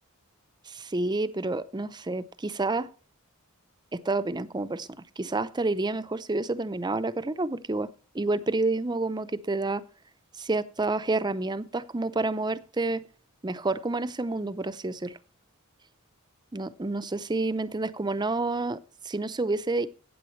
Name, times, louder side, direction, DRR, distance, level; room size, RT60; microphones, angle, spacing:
voice 1, 0.7-2.9 3.9-4.9 5.2-9.8 10.4-13.0 13.4-15.2 16.5-19.9, right 2 dB, 20° right, 0.6 m, -29 dB
15.0 x 8.7 x 3.1 m
head